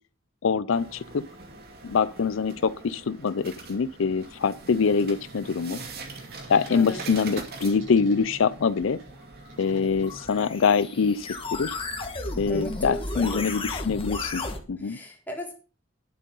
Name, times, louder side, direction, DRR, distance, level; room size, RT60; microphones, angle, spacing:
voice 1, 0.4-1.3 1.8-5.8 6.5-9.0 9.6-11.8 12.4-14.4 14.7-15.0, left 5 dB, 75° left, 0.5 m, -24 dB
sound 1, 0.7-14.6, right 4 dB, 55° right, 2.4 m, -45 dB
sound 2, 4.5-10.8, right 2 dB, 70° right, 6.8 m, -47 dB
sound 3, 9.6-14.6, left 2 dB, 30° left, 1.7 m, -34 dB
voice 2, 12.5-13.5 14.8-15.5, left 1 dB, 10° left, 3.5 m, -36 dB
11.0 x 7.5 x 5.5 m
head